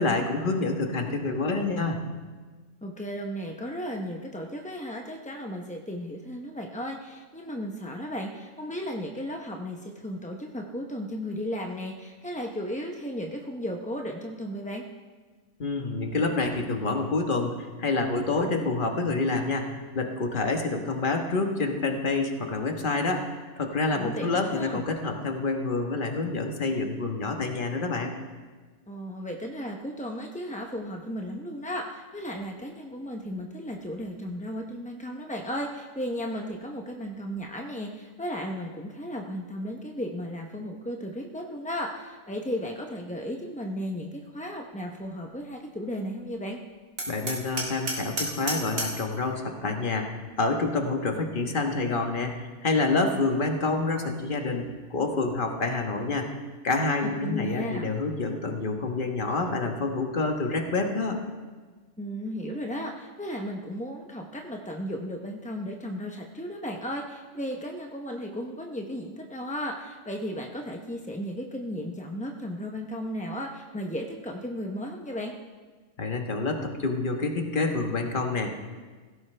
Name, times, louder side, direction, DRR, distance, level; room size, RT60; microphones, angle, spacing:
voice 1, 0.0-2.0 15.6-28.2 47.1-56.3 56.6-61.2 76.0-78.5, left 3 dB, 40° left, 3 dB, 1.4 m, -27 dB
voice 2, 2.8-14.8 23.9-24.8 28.9-46.6 57.2-57.9 62.0-75.3, equal, 10° left, 1 dB, 0.4 m, -35 dB
Hammer, 47.0-49.1, right 1 dB, 65° right, 2.5 m, -32 dB
16.5 x 15.5 x 3.3 m, 1.4 s
omnidirectional pair, 1.5 m